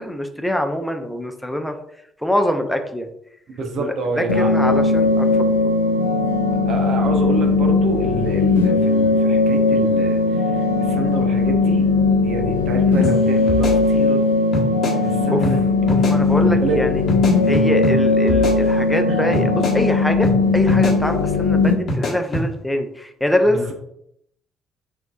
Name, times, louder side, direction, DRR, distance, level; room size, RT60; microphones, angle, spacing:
voice 1, 0.0-1.8 2.2-3.1 3.8-5.5 12.8-13.0 15.3-15.5 15.9-17.0 17.5-23.8, equal, 5° left, 5 dB, 0.6 m, -24 dB
voice 2, 3.5-4.5 6.6-11.9 12.2-14.2 15.0-15.6 16.4-16.8 19.1-19.3 23.5-23.6, right 3 dB, 60° right, 3 dB, 0.7 m, -27 dB
sound 1, 4.3-21.7, left 3 dB, 85° left, 0.4 m, -18 dB
sound 2, 13.0-13.2 13.5-14.2 14.5-15.0 15.4-15.6 15.9-16.2 17.1-18.0 18.3-19.0 19.3-19.8 20.2-20.4 20.7-21.0 21.9-22.5, left 1 dB, 55° left, 1.1 m, -24 dB
5.8 x 2.6 x 2.4 m, 0.74 s
hypercardioid pair, 50°, 0 cm